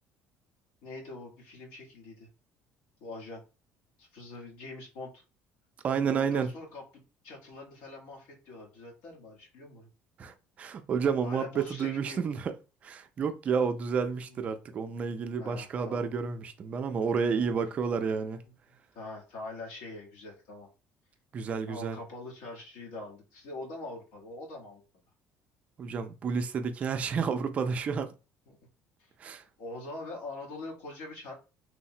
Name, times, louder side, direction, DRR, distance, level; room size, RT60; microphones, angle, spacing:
voice 1, 0.8-2.3 3.0-3.4 4.0-5.2 6.1-9.9 11.2-12.3 14.3-14.4 15.4-16.1 17.2-17.4 18.9-20.7 21.7-24.8 28.5-28.6 29.0-29.1 29.6-31.3, left 2 dB, 80° left, 1.1 m, -43 dB
voice 2, 5.8-6.5 10.2-12.5 12.8-18.4 21.3-22.0 25.8-28.1 29.2-29.4, right 6 dB, 30° right, 0.3 m, -30 dB
3.1 x 2.0 x 2.7 m
cardioid pair, 155°, 4 cm